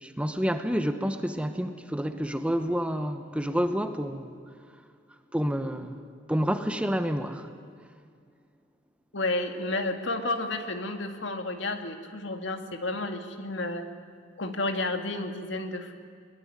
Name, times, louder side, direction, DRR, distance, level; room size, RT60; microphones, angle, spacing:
voice 1, 0.0-4.3 5.3-6.0 6.3-7.5, equal, 5° right, 8 dB, 1.0 m, -29 dB
voice 2, 9.1-13.8 14.4-15.9, left 2 dB, 70° left, 6 dB, 2.1 m, -31 dB
21.5 x 21.0 x 9.7 m, 2.2 s
head